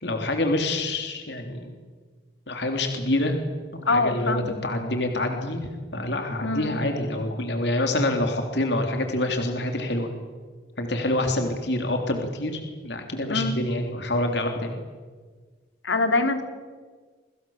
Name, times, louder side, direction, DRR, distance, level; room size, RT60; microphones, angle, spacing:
voice 1, 0.0-1.7 2.5-3.4 3.7-10.1 10.8-14.7, left 1 dB, 65° left, 4 dB, 3.5 m, -26 dB
voice 2, 3.9-4.6 6.4-6.8 13.3-13.5 15.8-16.4, left 3 dB, 85° left, 6 dB, 3.3 m, -24 dB
28.0 x 24.5 x 7.3 m, 1.5 s
head